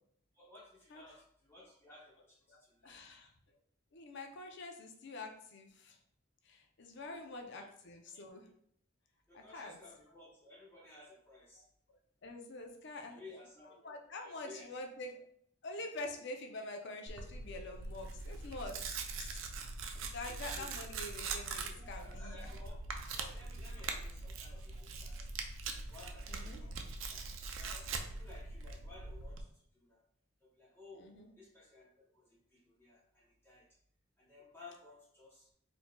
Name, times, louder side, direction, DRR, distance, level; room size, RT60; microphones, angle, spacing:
voice 1, 0.3-3.0 7.0-7.2 7.5-7.7 9.3-11.6 13.1-13.9 14.2-14.7 20.2-20.7 21.2-21.3 21.7-22.8 23.1-25.1 25.8-26.7 27.1-27.2 27.6-30.0 30.4-31.1 31.4-33.6 34.2-35.5, left 2 dB, 10° left, -6 dB, 0.7 m, -57 dB
voice 2, 2.5-3.3 3.9-6.0 6.4-8.5 9.3-9.8 12.2-13.2 13.7-15.2 15.6-19.4 19.9-22.5 26.3-26.7 31.0-31.3, left 2 dB, 55° left, 3 dB, 0.5 m, -46 dB
Tearing, 17.1-29.4, right 4 dB, 65° right, 0.4 m, -42 dB
4.4 x 2.7 x 2.2 m, 0.68 s
head